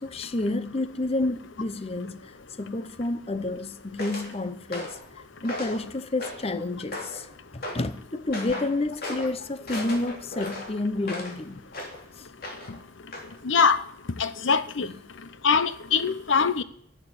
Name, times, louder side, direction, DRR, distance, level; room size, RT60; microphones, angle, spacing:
voice 1, 0.0-2.2 2.6-5.0 5.4-11.6 12.2-12.3 14.8-15.0, left 2 dB, 30° left, 0.7 m, -30 dB
sound 1, 4.0-4.3 4.7-5.0 5.4-5.8 6.2-6.5 6.9-7.2 7.6-7.9 8.3-8.7 9.0-9.3 9.7-11.4 11.7-12.0 12.4-12.8 13.1-13.3, left 1 dB, 50° left, 3.1 m, -36 dB
voice 2, 13.5-13.8 14.2-14.9 15.4-16.6, left 5 dB, 80° left, 0.8 m, -22 dB
11.5 x 8.3 x 9.7 m
head